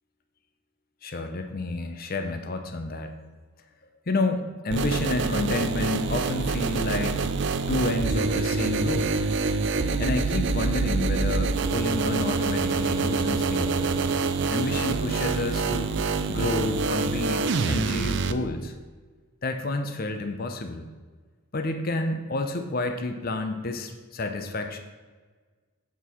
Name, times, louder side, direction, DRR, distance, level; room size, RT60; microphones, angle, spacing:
voice 1, 1.0-3.2 4.1-7.3 7.7-9.1 9.6-14.0 14.5-15.9 16.3-18.7 19.4-20.9 21.5-24.8, left 2 dB, 40° left, 6 dB, 0.6 m, -30 dB
sound 1, 4.7-18.3, right 4 dB, 55° right, 0.4 m, -26 dB
8.2 x 4.7 x 5.5 m, 1.4 s
head